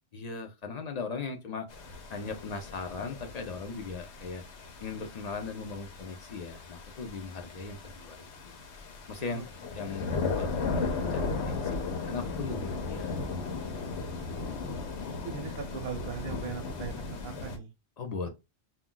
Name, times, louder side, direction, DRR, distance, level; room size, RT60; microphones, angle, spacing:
voice 1, 0.1-1.7 2.1-4.4 4.8-8.6 9.1-9.4 9.7-10.1 10.4-11.8 12.1-13.2 18.0-18.3, left 4 dB, 55° left, 0.5 m, -38 dB
sound 1, 1.7-17.6, left 4 dB, 80° left, 1.0 m, -36 dB
voice 2, 14.1-14.5 15.1-17.7, right 6 dB, 65° right, 0.7 m, -40 dB
2.2 x 2.2 x 3.7 m
omnidirectional pair, 1.1 m